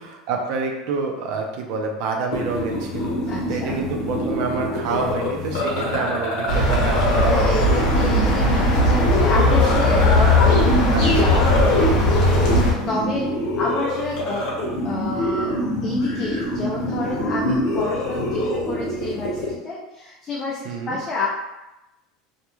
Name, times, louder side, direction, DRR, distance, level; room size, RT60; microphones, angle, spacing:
voice 1, 0.0-3.1 3.5-7.8 10.9-11.4 20.6-21.0, right 4 dB, 60° right, 2 dB, 0.5 m, -28 dB
sound 1, 2.3-19.5, left 1 dB, 85° left, 0.9 m, -25 dB
voice 2, 3.3-3.8 4.9-5.1 7.1-13.3 13.6-15.6 15.8-21.3, left 2 dB, 30° left, -4 dB, 0.4 m, -29 dB
sound 2, 6.5-12.7, left 1 dB, 60° left, 0.8 m, -18 dB
2.3 x 2.2 x 3.0 m, 0.99 s
supercardioid pair, 135°, 0 cm